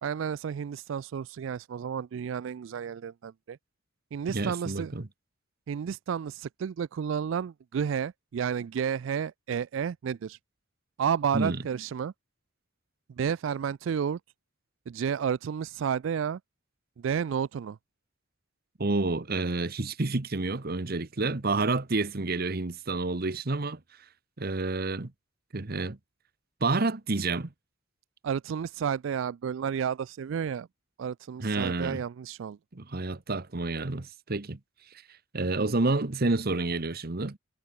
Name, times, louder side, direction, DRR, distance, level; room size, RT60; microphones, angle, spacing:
voice 1, 0.0-3.6 4.1-4.9 5.7-10.4 11.0-12.1 13.2-14.2 14.9-16.4 17.0-17.8 28.2-30.7 31.0-32.6, right 7 dB, 65° right, 0.3 m, -31 dB
voice 2, 4.3-5.1 11.3-11.6 18.8-23.8 24.4-25.1 25.5-26.0 26.6-27.5 31.4-32.0 32.7-34.6 35.3-37.4, right 3 dB, 45° right, 1.1 m, -29 dB
head